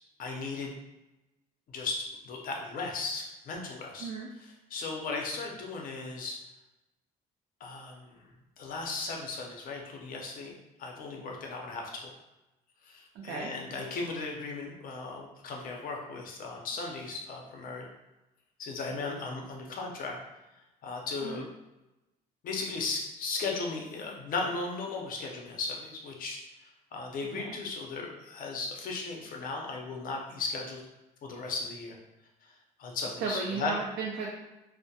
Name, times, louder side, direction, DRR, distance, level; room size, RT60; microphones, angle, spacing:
voice 1, 0.2-0.7 1.7-4.1 4.4-6.4 7.6-8.3 8.6-10.5 10.8-12.1 12.8-17.9 18.6-20.2 20.8-21.5 22.4-30.8 31.2-32.0 32.8-33.7, left 3 dB, 55° left, 0 dB, 0.6 m, -36 dB
voice 2, 13.1-13.5 21.2-21.4 27.3-27.5 33.2-34.3, right 4 dB, 75° right, -1 dB, 0.4 m, -35 dB
2.2 x 2.0 x 2.7 m, 1.0 s
cardioid pair, 110°, 17 cm